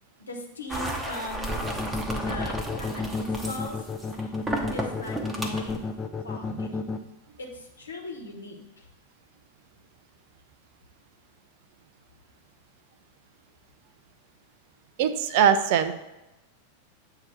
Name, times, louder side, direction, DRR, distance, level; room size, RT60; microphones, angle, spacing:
voice 1, 0.3-1.6 2.2-3.8 4.7-5.8 6.2-6.8 7.4-8.6, left 2 dB, 75° left, 1 dB, 1.2 m, -39 dB
sound 1, 0.7-5.8, right 2 dB, 10° right, 0.8 m, -33 dB
sound 2, 1.5-7.0, left 4 dB, 15° left, 0.5 m, -31 dB
voice 2, 15.0-15.9, right 8 dB, 50° right, 11 dB, 0.5 m, -22 dB
7.5 x 2.9 x 6.0 m, 1.0 s
figure-of-eight pair, 90°, 0 cm